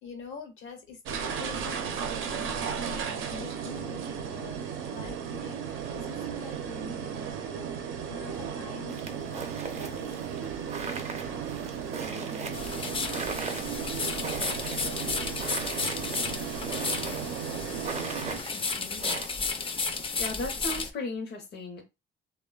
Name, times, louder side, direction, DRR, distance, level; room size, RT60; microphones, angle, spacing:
voice 1, 0.0-7.3 8.1-10.1 11.9-13.5 13.9-14.4 14.8-15.6, left 4 dB, 80° left, 1.0 m, -46 dB
sound 1, 1.1-18.4, right 7 dB, 85° right, 0.5 m, -35 dB
sound 2, 8.9-19.3, right 4 dB, 35° right, 0.5 m, -40 dB
sound 3, 12.5-20.9, left 4 dB, 25° left, 0.4 m, -33 dB
voice 2, 18.5-19.2 20.2-21.8, left 3 dB, 55° left, 0.7 m, -37 dB
3.0 x 2.1 x 2.3 m
cardioid pair, 90°, 20 cm